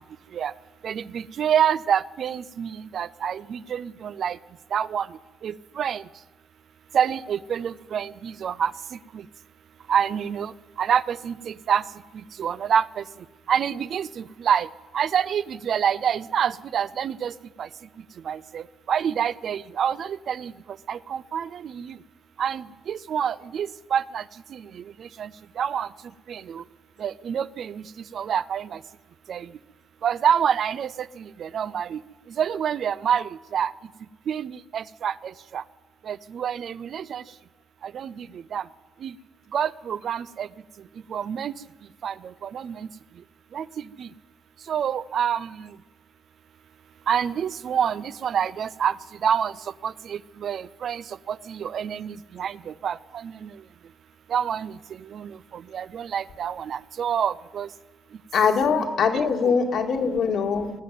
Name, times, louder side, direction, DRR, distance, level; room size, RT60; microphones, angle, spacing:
voice 1, 0.8-4.4 4.7-5.1 5.4-6.0 6.9-8.7 9.1-9.2 9.9-10.5 10.8-11.8 12.4-13.0 13.5-14.7 14.9-17.3 17.6-17.7 18.3-20.5 20.9-21.9 22.4-24.2 24.5-25.3 25.6-25.9 26.3-26.6 27.0-27.8 28.1-28.8 29.3-29.5 30.0-32.0 32.4-33.7 34.3-35.6 36.1-37.2 37.8-38.3 38.5-38.6 39.0-39.1 39.5-40.5 41.1-41.5 42.0-42.1 42.4-42.9 43.5-43.7 44.0-44.1 44.7-45.7 47.1-49.0 49.2-49.5 49.8-53.5 54.3-54.7 55.1-57.7 59.4-59.5, right 8 dB, 60° right, 17 dB, 0.4 m, -27 dB
voice 2, 58.3-60.7, left 6 dB, 70° left, 3 dB, 2.0 m, -22 dB
18.5 x 8.0 x 9.3 m, 1.2 s
cardioid pair, 90°, 0 cm